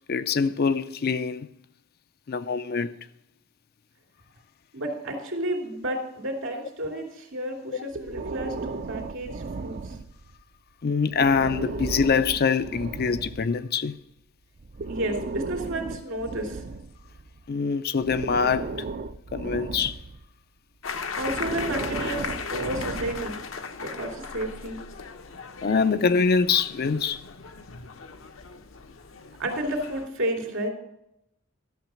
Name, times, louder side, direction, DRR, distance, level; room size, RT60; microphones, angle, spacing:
voice 1, 0.1-1.5 2.3-2.9 7.7-7.9 10.8-14.0 17.5-18.8 19.3-20.0 25.6-27.2, left 5 dB, 50° left, 0.5 m, -24 dB
voice 2, 4.7-9.8 14.9-16.6 21.2-22.2 22.5-23.4 23.8-24.8 29.4-30.7, right 1 dB, 70° right, 2.7 m, -31 dB
Breathing, 7.9-10.4 11.1-13.5 14.6-17.4 18.0-20.2 21.2-23.5, right 3 dB, 45° right, 0.5 m, -35 dB
sound 1, 20.8-30.1, left 5 dB, 75° left, 0.8 m, -37 dB
12.0 x 6.6 x 6.3 m
head